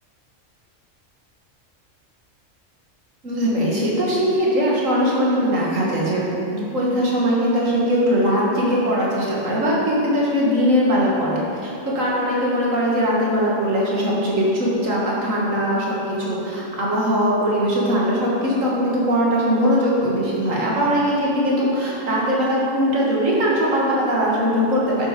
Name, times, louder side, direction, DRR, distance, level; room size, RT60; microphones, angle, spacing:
voice 1, 3.2-6.3 6.5-25.1, equal, 85° right, -5 dB, 2.4 m, -20 dB
10.5 x 7.4 x 5.1 m, 2.7 s
omnidirectional pair, 1.3 m